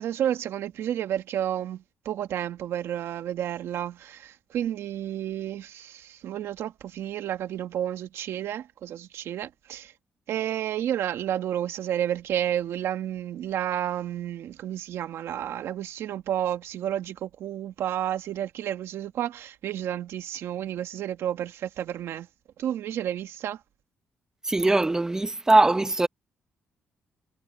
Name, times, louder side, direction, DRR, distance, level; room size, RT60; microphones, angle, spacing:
voice 1, 0.0-9.9 10.3-22.3 22.6-23.6, right 11 dB, 80° right, 1.4 m, -31 dB
voice 2, 24.5-26.1, right 2 dB, 15° right, 0.9 m, -21 dB
cardioid pair, 120°, 4 cm